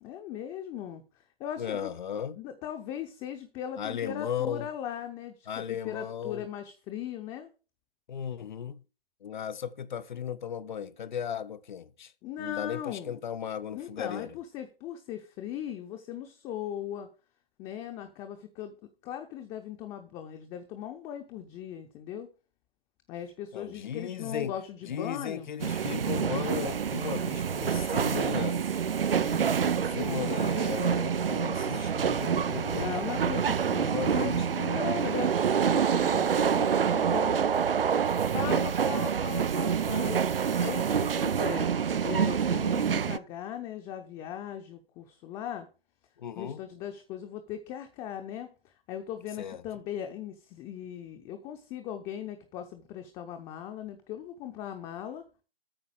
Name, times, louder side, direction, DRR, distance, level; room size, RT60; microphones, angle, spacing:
voice 1, 0.0-1.9 2.4-7.5 12.2-13.2 13.7-17.1 17.6-22.3 23.1-25.5 29.1-30.6 32.7-37.5 38.3-45.7 46.4-55.2, left 9 dB, 15° left, 0.9 m, -39 dB
voice 2, 1.6-2.4 3.8-4.7 5.5-6.5 8.1-8.8 9.2-12.1 12.4-14.3 23.5-24.5 24.8-28.6 29.9-33.4 33.8-34.8 38.4-38.6 46.2-46.6 49.4-49.6, left 8 dB, 55° left, 0.8 m, -36 dB
sound 1, 25.6-43.2, right 7 dB, 75° right, 0.7 m, -27 dB
8.9 x 5.7 x 7.1 m
figure-of-eight pair, 130°, 29 cm